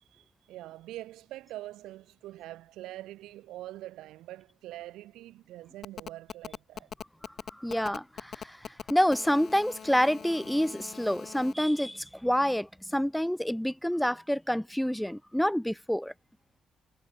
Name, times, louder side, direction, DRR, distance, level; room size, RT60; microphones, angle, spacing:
voice 1, 0.1-6.9, right 15 dB, 90° right, 6.5 m, -44 dB
Telephone, 5.8-11.5, left 8 dB, 55° left, 1.1 m, -42 dB
voice 2, 7.5-16.1, equal, 5° left, 0.4 m, -28 dB
cardioid pair, 90°, 0 cm